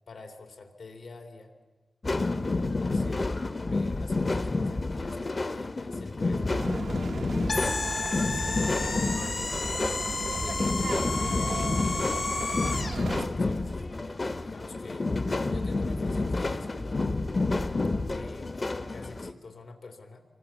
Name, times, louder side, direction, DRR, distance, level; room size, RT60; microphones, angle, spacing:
voice 1, 0.1-1.5 2.1-3.3 3.7-6.8 8.0-10.0 10.4-17.0 18.1-20.3, left 3 dB, 80° left, 5 dB, 3.2 m, -47 dB
sound 1, 2.0-19.3, left 3 dB, 35° left, 0.8 m, -29 dB
sound 2, 6.5-13.3, right 5 dB, 80° right, 0.8 m, -37 dB
sound 3, 7.5-13.0, left 3 dB, 55° left, 1.4 m, -32 dB
27.0 x 24.0 x 7.2 m, 1.3 s
wide cardioid pair, 140°, 0 cm